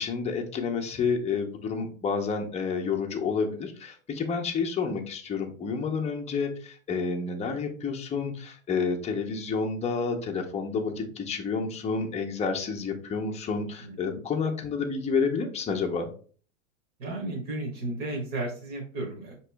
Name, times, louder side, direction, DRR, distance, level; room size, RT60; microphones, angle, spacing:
voice 1, 0.0-16.1, left 5 dB, 15° left, 2 dB, 0.7 m, -29 dB
voice 2, 17.0-19.3, right 2 dB, 35° right, -1 dB, 1.2 m, -33 dB
5.2 x 3.0 x 3.4 m, 0.42 s
hypercardioid pair, 120°, 39 cm